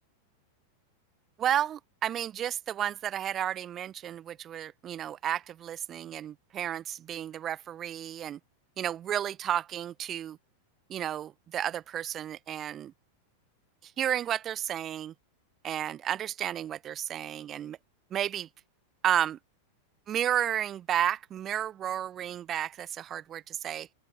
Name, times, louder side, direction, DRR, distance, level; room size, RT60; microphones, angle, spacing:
voice 1, 1.4-8.4 8.8-10.4 10.9-12.9 13.8-15.1 15.6-17.8 18.1-18.5 19.0-19.4 20.1-23.9, right 10 dB, 30° right, 1.1 m, -32 dB
open air
figure-of-eight pair, 90°, 0 cm